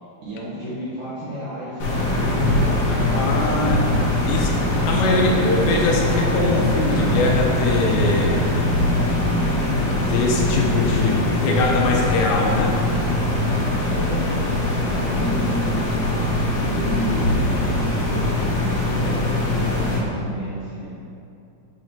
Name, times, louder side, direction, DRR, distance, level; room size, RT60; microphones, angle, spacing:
voice 1, 0.2-2.6 2.9-4.3 5.0-5.6 13.8-17.4 17.9-21.0, right 1 dB, 65° right, -11 dB, 2.2 m, -34 dB
sound 1, 1.8-20.0, left 1 dB, 65° left, 2.4 m, -21 dB
voice 2, 2.9-3.8 4.2-4.5 4.9-8.5 10.1-12.7, left 3 dB, 80° left, -1 dB, 2.7 m, -22 dB
8.7 x 3.1 x 4.3 m, 2.6 s
omnidirectional pair, 5.1 m